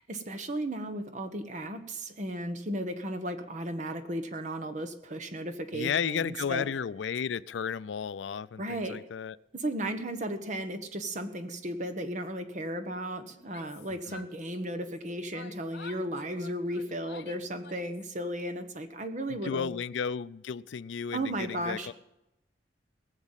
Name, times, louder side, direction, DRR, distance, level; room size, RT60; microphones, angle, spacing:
voice 1, 0.0-6.6 8.6-9.0 9.5-19.7 21.1-21.9, right 1 dB, 40° right, 8 dB, 1.3 m, -35 dB
voice 2, 5.7-9.4 14.1-14.2 19.3-21.9, left 7 dB, 85° left, 19 dB, 0.4 m, -33 dB
Yell, 13.4-15.0 15.3-18.1, left 5 dB, 60° left, 0.7 m, -50 dB
19.5 x 7.3 x 7.4 m, 0.88 s
head